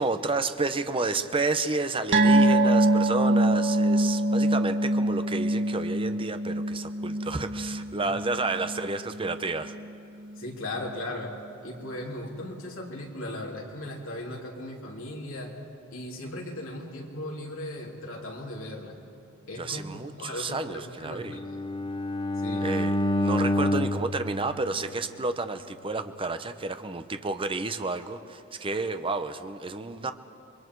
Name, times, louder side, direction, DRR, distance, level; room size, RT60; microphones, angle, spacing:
voice 1, 0.0-9.8 19.6-21.4 22.6-30.1, right 3 dB, 25° right, 9 dB, 0.8 m, -31 dB
sound 1, 2.1-8.9 9.2-9.4 9.8-9.9, right 1 dB, 60° right, 1.7 m, -24 dB
voice 2, 10.3-11.3 11.6-15.5 15.9-18.9 19.5-21.4 22.4-22.7, left 1 dB, 70° left, -1 dB, 3.4 m, -37 dB
Bowed string instrument, 21.2-25.4, left 1 dB, 25° left, 1.0 m, -28 dB
28.0 x 22.5 x 4.7 m, 2.9 s
head